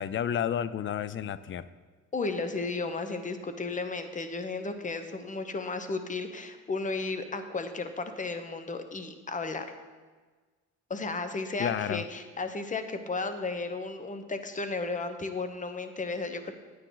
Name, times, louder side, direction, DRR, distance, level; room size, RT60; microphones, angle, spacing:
voice 1, 0.0-1.6 11.6-12.1, left 9 dB, 40° left, 16 dB, 0.4 m, -31 dB
voice 2, 2.1-9.7 10.9-16.5, left 3 dB, 25° left, 8 dB, 0.9 m, -34 dB
9.6 x 9.1 x 3.9 m, 1.4 s
cardioid pair, 90°, 30 cm